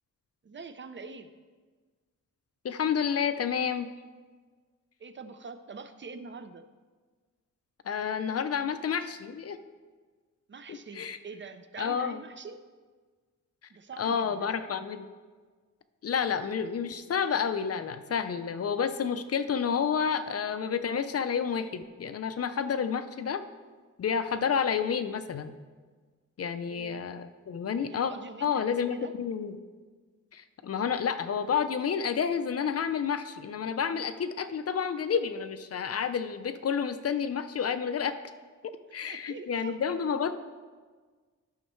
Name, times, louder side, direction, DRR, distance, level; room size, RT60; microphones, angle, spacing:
voice 1, 0.4-1.3 5.0-6.7 10.5-12.6 13.7-14.5 24.3-24.5 26.7-27.0 27.9-29.1 39.1-39.8, right 4 dB, 40° right, 10 dB, 0.5 m, -44 dB
voice 2, 2.6-3.9 7.9-9.6 10.7-11.2 11.8-12.2 14.0-15.1 16.0-23.4 24.0-25.5 26.4-28.1 28.4-29.6 30.3-38.1 38.9-40.3, left 7 dB, 50° left, 10 dB, 0.5 m, -30 dB
13.0 x 6.4 x 3.1 m, 1.4 s
wide cardioid pair, 120°, 31 cm